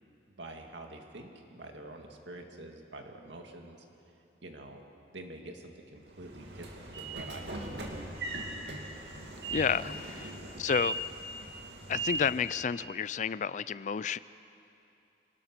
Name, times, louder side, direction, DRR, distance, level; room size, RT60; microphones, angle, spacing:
voice 1, 0.3-3.8 4.4-4.8 5.1-8.2 10.4-10.6, right 2 dB, 85° right, 3 dB, 2.2 m, -47 dB
Train / Sliding door, 6.1-12.6, right 1 dB, 65° right, 2.6 m, -38 dB
voice 2, 9.5-10.3 10.6-11.0 11.9-14.2, left 6 dB, 40° left, 17 dB, 0.4 m, -30 dB
25.5 x 18.5 x 6.0 m, 2.7 s
head